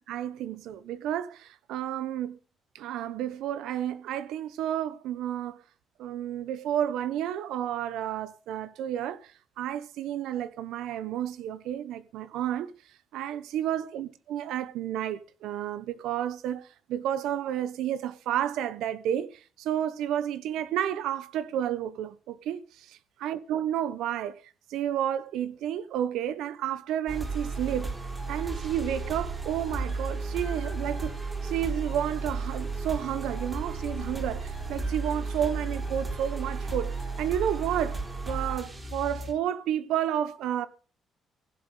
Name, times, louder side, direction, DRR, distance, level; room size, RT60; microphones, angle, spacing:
voice 1, 0.1-2.4 2.7-5.6 6.0-9.3 9.6-12.7 13.1-22.8 23.2-24.4 24.7-27.9 28.3-38.0 38.2-40.7, right 10 dB, 85° right, 1.2 m, -31 dB
sound 1, 27.1-39.3, right 3 dB, 15° right, 3.9 m, -33 dB
15.5 x 7.5 x 7.2 m
cardioid pair, 130°, 0 cm